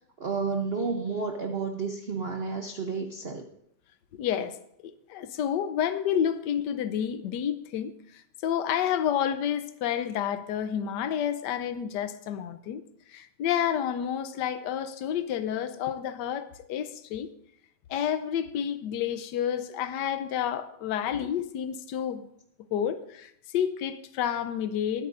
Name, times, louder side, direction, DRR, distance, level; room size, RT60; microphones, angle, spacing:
voice 1, 0.2-3.5, right 4 dB, 75° right, 0.5 m, -31 dB
voice 2, 4.1-4.6 4.8-7.9 8.4-12.8 13.1-17.3 17.9-22.3 22.7-25.1, left 9 dB, 65° left, 1.1 m, -29 dB
22.5 x 8.8 x 2.6 m
omnidirectional pair, 2.3 m